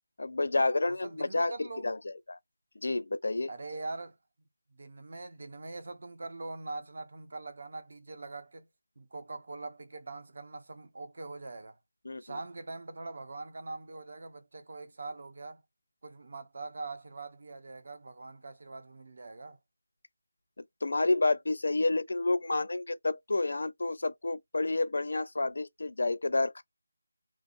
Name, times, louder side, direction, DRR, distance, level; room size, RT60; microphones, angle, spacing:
voice 1, 0.2-2.4 2.8-3.5 12.0-12.2 20.6-26.6, left 2 dB, 65° left, 0.5 m, -30 dB
voice 2, 0.8-1.9 3.5-4.2 4.7-8.7 9.0-11.8 12.2-15.6 16.0-19.6, right 3 dB, 50° right, 0.8 m, -43 dB
2.9 x 2.5 x 2.5 m
figure-of-eight pair, 175°, 0 cm